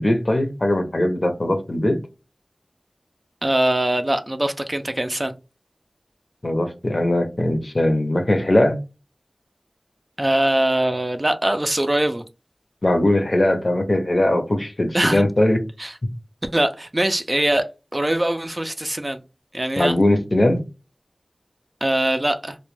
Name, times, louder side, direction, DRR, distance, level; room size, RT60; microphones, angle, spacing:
voice 1, 0.0-2.0 6.4-8.8 12.8-15.6 19.8-20.6, left 1 dB, 55° left, 0.6 m, -20 dB
voice 2, 3.4-5.3 10.2-12.2 14.9-15.2 15.8-15.9 16.5-17.7 17.9-19.2 19.5-19.9 21.8-22.6, right 1 dB, 35° right, 0.3 m, -22 dB
2.1 x 2.1 x 3.0 m
wide cardioid pair, 40°, 0 cm